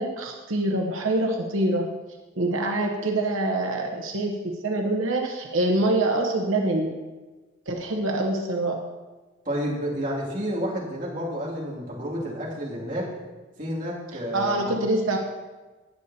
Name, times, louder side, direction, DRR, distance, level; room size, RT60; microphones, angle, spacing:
voice 1, 0.0-1.9 2.4-6.9 7.7-8.8 14.3-15.2, right 2 dB, 90° right, 1 dB, 0.9 m, -25 dB
voice 2, 9.5-13.1 13.6-14.7, equal, 40° right, -5 dB, 2.3 m, -30 dB
18.5 x 6.6 x 2.7 m, 1.2 s
head